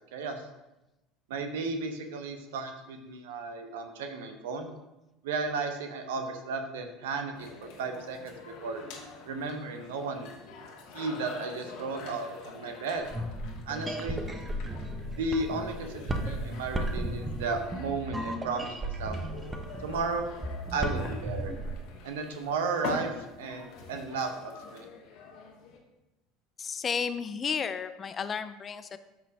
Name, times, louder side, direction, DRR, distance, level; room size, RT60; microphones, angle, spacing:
voice 1, 0.1-0.4 1.3-4.7 5.2-8.8 9.3-10.3 10.9-13.1 13.7-14.2 15.2-19.2 19.8-20.3 20.7-21.5 22.0-24.9, right 3 dB, 65° right, 6 dB, 1.0 m, -34 dB
sound 1, 7.3-25.8, left 4 dB, 55° left, 1.6 m, -45 dB
sound 2, 13.0-21.8, right 1 dB, 15° right, 0.9 m, -35 dB
voice 2, 26.6-29.0, left 6 dB, 30° left, 12 dB, 0.5 m, -32 dB
13.0 x 5.8 x 2.7 m, 0.96 s
figure-of-eight pair, 70°, 0 cm